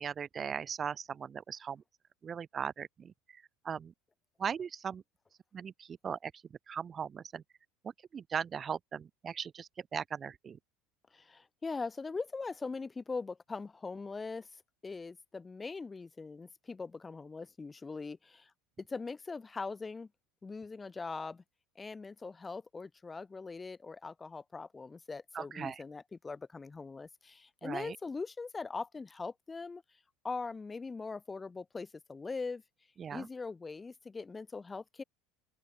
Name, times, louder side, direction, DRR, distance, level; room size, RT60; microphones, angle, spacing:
voice 1, 0.0-1.8 2.2-3.9 4.4-5.0 5.5-6.3 6.7-7.4 7.8-10.6 25.3-25.8 27.6-28.0 33.0-33.3, right 7 dB, 30° right, 0.6 m, -39 dB
voice 2, 11.1-14.5 14.8-18.5 18.8-20.1 20.4-21.4 21.8-29.8 30.2-32.6 33.1-35.0, left 4 dB, 20° left, 0.9 m, -41 dB
open air
supercardioid pair, 105°, 0 cm